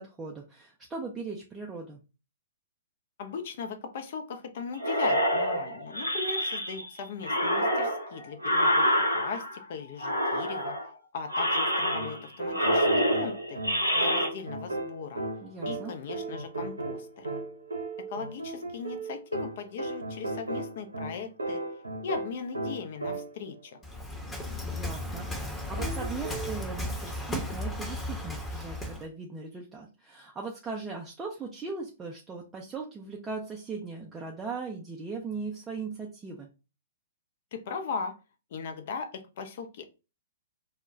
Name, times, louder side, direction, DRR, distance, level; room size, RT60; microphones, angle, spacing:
voice 1, 0.0-2.0 15.4-15.9 24.6-36.5, right 4 dB, 15° right, -1 dB, 0.4 m, -39 dB
voice 2, 3.2-8.9 9.1-10.8 11.1-13.6 13.9-15.2 15.7-17.3 18.0-21.6 22.0-23.8 37.5-38.2 38.5-39.8, left 5 dB, 50° left, 6 dB, 0.5 m, -38 dB
sound 1, 4.8-6.9 7.2-9.6 10.0-10.9 11.3-12.3 12.5-14.3, equal, 90° left, 0.6 m, -27 dB
sound 2, 11.9-23.5 25.8-26.6, right 2 dB, 80° right, 0.6 m, -36 dB
Waves surf, 23.8-29.1, left 1 dB, 15° left, 0.8 m, -35 dB
2.2 x 2.1 x 3.8 m, 0.31 s
figure-of-eight pair, 115°, 0 cm